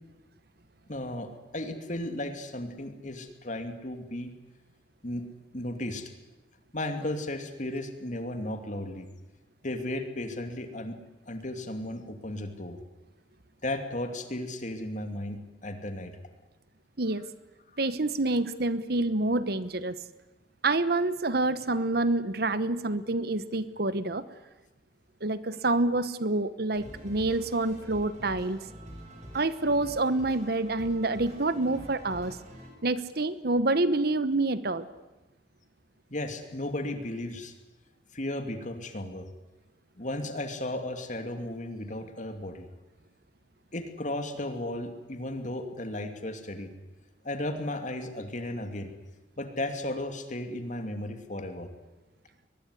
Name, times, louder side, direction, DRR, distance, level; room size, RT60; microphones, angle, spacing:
voice 1, 0.9-4.3 5.0-5.2 5.5-6.1 6.7-9.1 9.6-11.0 11.3-12.8 13.6-16.1 36.1-37.5 38.1-39.3 40.0-42.7 43.7-46.7 47.2-48.9 49.4-51.7, left 1 dB, 45° left, 7 dB, 2.8 m, -35 dB
voice 2, 17.8-20.0 20.6-24.2 25.2-28.6 29.3-32.4 32.8-34.9, right 2 dB, 60° right, 14 dB, 1.1 m, -27 dB
sound 1, 26.7-32.7, equal, 40° right, 7.5 m, -46 dB
22.0 x 20.5 x 9.9 m, 1.1 s
head